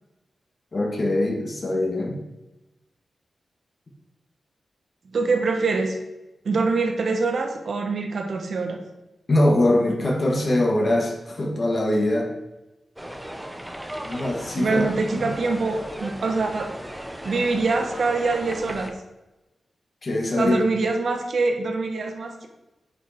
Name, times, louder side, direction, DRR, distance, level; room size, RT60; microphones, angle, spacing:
voice 1, 0.7-2.2 9.3-12.3 14.0-14.8 15.1-15.4 20.0-20.6, left 1 dB, 35° left, 0 dB, 1.9 m, -22 dB
voice 2, 5.1-6.0 6.4-8.8 14.6-16.7 17.2-18.9 20.4-22.5, right 3 dB, 60° right, 4 dB, 1.2 m, -24 dB
sound 1, 13.0-18.9, equal, 5° right, 0.7 m, -36 dB
10.0 x 5.6 x 4.5 m, 1.0 s
wide cardioid pair, 160°, 0 cm